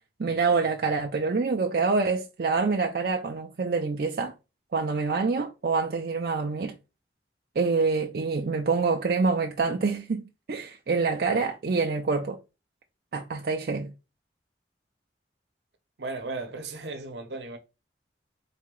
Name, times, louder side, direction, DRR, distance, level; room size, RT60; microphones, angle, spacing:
voice 1, 0.2-4.3 4.7-6.7 7.6-10.2 10.5-12.4 13.1-13.9, right 4 dB, 60° right, 0.5 m, -26 dB
voice 2, 16.0-17.6, right 3 dB, 75° right, 0.9 m, -35 dB
4.1 x 2.8 x 3.6 m
head